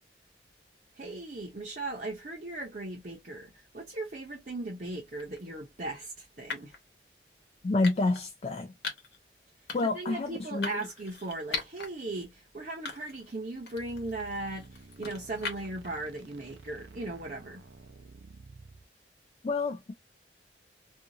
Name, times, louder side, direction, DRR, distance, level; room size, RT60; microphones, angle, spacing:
voice 1, 1.0-6.7 9.8-17.6, right 2 dB, 45° right, 0.7 m, -38 dB
sound 1, 5.2-5.4 6.5-6.8 7.8-8.3 8.8-9.2 9.7-10.0 10.6-11.9 12.3-12.4 12.9-13.3 13.7-15.9, left 4 dB, 75° left, 1.0 m, -39 dB
voice 2, 7.6-8.7 9.7-10.8 19.4-19.9, left 3 dB, 35° left, 0.3 m, -29 dB
sound 2, 13.7-18.8, right 3 dB, 85° right, 0.5 m, -51 dB
2.6 x 2.4 x 2.7 m
head